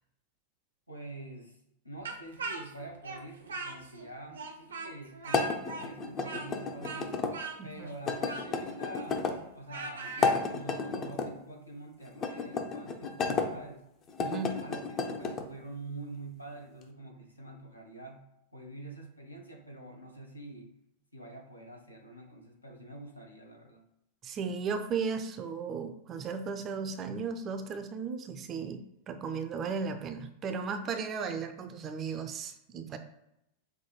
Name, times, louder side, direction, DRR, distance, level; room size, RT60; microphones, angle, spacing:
voice 1, 0.9-1.6 1.8-7.2 7.6-13.9 14.6-18.3 18.5-20.7 21.1-23.9, right 2 dB, 85° left, 1 dB, 0.8 m, -46 dB
Speech, 2.0-4.1 4.3-10.4, right 4 dB, 70° right, 0.6 m, -41 dB
sound 1, 5.3-7.3 8.1-9.4 10.1-11.3 12.1-13.5 14.1-15.5, left 4 dB, 30° left, 0.6 m, -32 dB
voice 2, 7.6-7.9 14.2-14.6 24.2-33.0, right 5 dB, 30° right, 8 dB, 0.4 m, -35 dB
5.7 x 2.2 x 3.0 m, 0.81 s
figure-of-eight pair, 90°, 0 cm